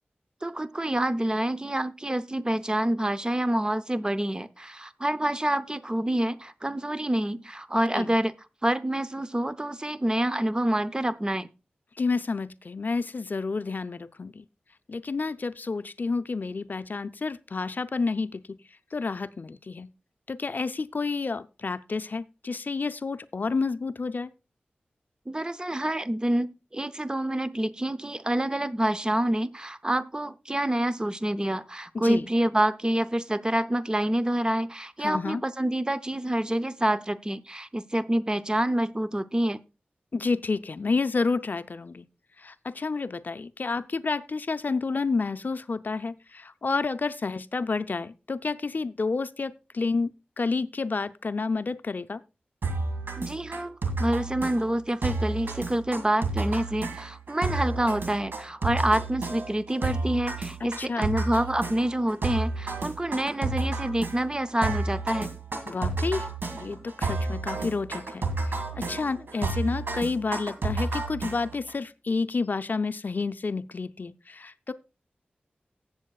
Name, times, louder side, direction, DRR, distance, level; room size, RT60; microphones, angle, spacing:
voice 1, 0.4-8.3 8.6-11.5 25.3-39.6 53.2-65.3, right 1 dB, 20° right, 0.6 m, -27 dB
voice 2, 12.0-14.4 14.9-18.6 18.9-19.9 20.3-24.3 31.9-32.3 35.0-35.4 40.1-42.1 42.4-52.2 60.8-61.1 65.7-66.3 66.5-74.7, left 4 dB, 55° left, 0.5 m, -30 dB
sound 1, 52.6-71.7, right 3 dB, 75° right, 1.9 m, -31 dB
18.5 x 7.6 x 2.3 m
cardioid pair, 45°, 4 cm